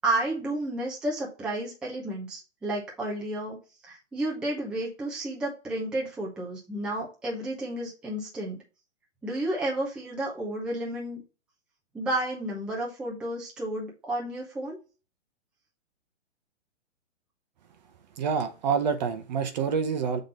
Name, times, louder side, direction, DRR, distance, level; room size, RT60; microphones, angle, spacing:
voice 1, 0.0-3.6 3.8-8.6 9.2-11.2 11.9-14.8, right 1 dB, ahead, 0.7 m, -31 dB
voice 2, 18.2-20.2, right 6 dB, 35° right, 0.9 m, -27 dB
7.3 x 3.9 x 3.9 m
hypercardioid pair, 160°, 37 cm